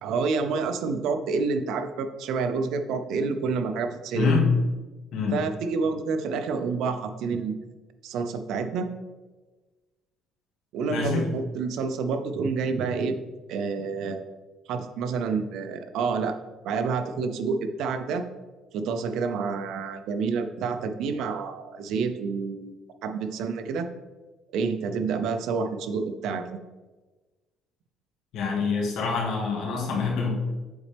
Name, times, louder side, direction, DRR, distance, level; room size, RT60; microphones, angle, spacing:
voice 1, 0.0-4.4 5.3-7.6 8.0-8.9 10.7-13.2 13.5-14.3 14.7-16.4 16.6-18.2 18.7-22.7 23.0-23.9 24.5-26.6, right 4 dB, 75° right, 9 dB, 0.5 m, -28 dB
voice 2, 4.1-4.4 5.1-5.4 10.9-11.3 28.3-30.3, left 5 dB, 70° left, -2 dB, 1.6 m, -26 dB
8.0 x 4.2 x 3.4 m, 1.2 s
cardioid pair, 110°, 0 cm